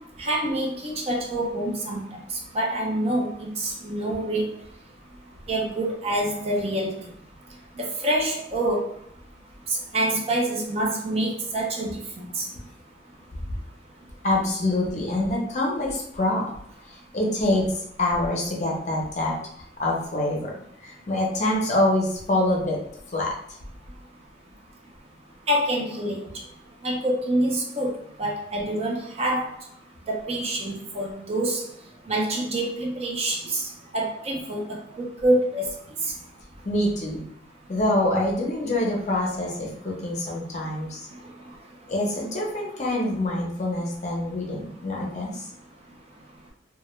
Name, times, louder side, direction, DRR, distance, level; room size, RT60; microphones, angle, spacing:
voice 1, 0.2-2.2 2.5-4.5 5.5-7.1 7.8-8.9 9.9-12.0 12.4-12.5 25.5-26.2 26.8-27.9 28.2-29.5 30.1-31.6 32.1-33.6 33.9-35.7, right 1 dB, 35° right, -1 dB, 0.4 m, -26 dB
voice 2, 14.2-16.5 16.9-20.5 20.8-22.8 23.1-23.3 36.6-37.2 37.7-41.1 41.9-45.5, left 1 dB, 40° left, -2 dB, 0.6 m, -25 dB
2.2 x 2.1 x 3.0 m, 0.69 s
head